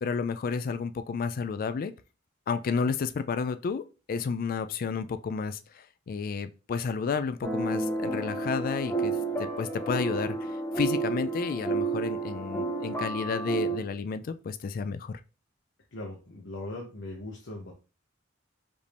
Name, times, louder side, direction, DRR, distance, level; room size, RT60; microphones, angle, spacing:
voice 1, 0.0-1.9 2.5-15.2, left 5 dB, 45° left, 0.3 m, -31 dB
sound 1, 7.4-13.8, right 3 dB, 10° left, 0.7 m, -31 dB
voice 2, 15.9-17.7, left 2 dB, 65° left, 0.8 m, -39 dB
5.1 x 2.7 x 3.3 m
head